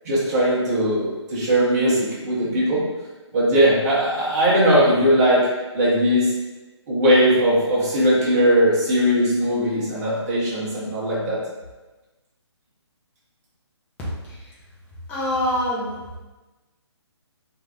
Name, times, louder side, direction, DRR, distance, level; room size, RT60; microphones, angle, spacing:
voice 1, 0.0-2.8 3.3-5.5 5.7-6.3 6.9-11.4, equal, 35° right, -8 dB, 1.0 m, -19 dB
voice 2, 15.1-16.0, left 1 dB, 10° left, -7 dB, 0.5 m, -24 dB
3.0 x 2.6 x 2.3 m, 1.2 s
hypercardioid pair, 155°, 15 cm